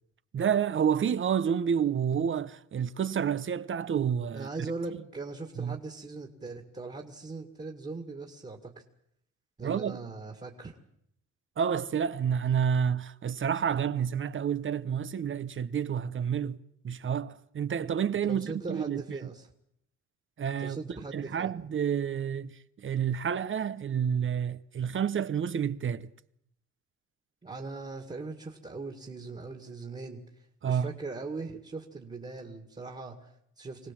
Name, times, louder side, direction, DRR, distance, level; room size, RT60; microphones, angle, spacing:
voice 1, 0.3-4.5 5.6-5.8 9.6-10.0 11.6-16.6 16.8-19.0 20.4-20.8 21.1-26.1 30.6-30.9, right 8 dB, 40° right, 0.9 m, -29 dB
voice 2, 4.3-8.8 9.6-10.8 18.2-19.5 20.6-21.6 27.4-33.9, right 3 dB, 25° right, 2.2 m, -40 dB
25.0 x 17.5 x 7.6 m
cardioid pair, 90°, 30 cm